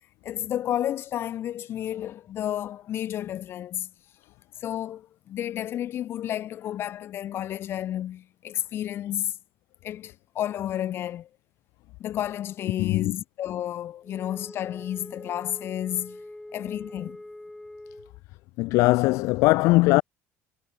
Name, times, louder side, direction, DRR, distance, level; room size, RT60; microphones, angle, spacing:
voice 1, 0.2-3.9 4.6-9.3 9.8-11.3 12.0-16.2 16.5-17.2, left 11 dB, 40° left, 2.7 m, -31 dB
voice 2, 12.8-13.1 18.6-20.0, left 22 dB, 65° left, 0.6 m, -20 dB
Wind instrument woodwind instrument, 14.0-18.2, left 1 dB, 5° left, 2.8 m, -44 dB
cardioid pair, 150°, 6 cm